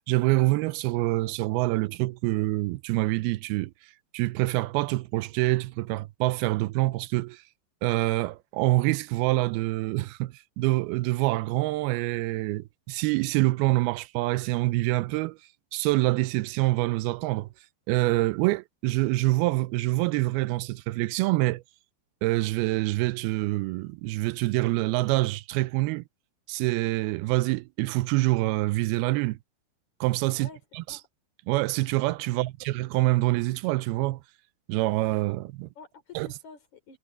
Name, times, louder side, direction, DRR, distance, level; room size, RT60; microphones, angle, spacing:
voice 1, 0.0-3.7 4.1-7.4 7.8-15.4 15.7-17.5 17.9-21.6 22.2-26.0 26.5-29.4 30.0-30.5 30.7-31.0 31.5-34.2 34.7-35.7 36.2-36.3, right 20 dB, 90° right, 2.5 m, -26 dB
voice 2, 30.3-30.6 30.9-31.1 32.3-32.5 35.8-37.0, left 5 dB, 50° left, 5.3 m, -49 dB
omnidirectional pair, 4.3 m